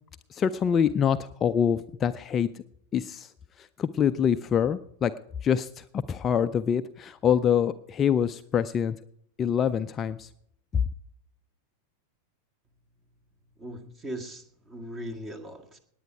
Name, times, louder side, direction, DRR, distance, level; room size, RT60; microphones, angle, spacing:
voice 1, 0.3-2.5 2.9-3.3 3.6-5.1 5.4-9.0 9.4-10.3 10.7-10.8, left 8 dB, 25° left, 11 dB, 0.5 m, -25 dB
voice 2, 13.6-15.8, equal, 20° right, 7 dB, 1.9 m, -39 dB
18.5 x 9.4 x 4.7 m, 0.70 s
figure-of-eight pair, 90°, 0 cm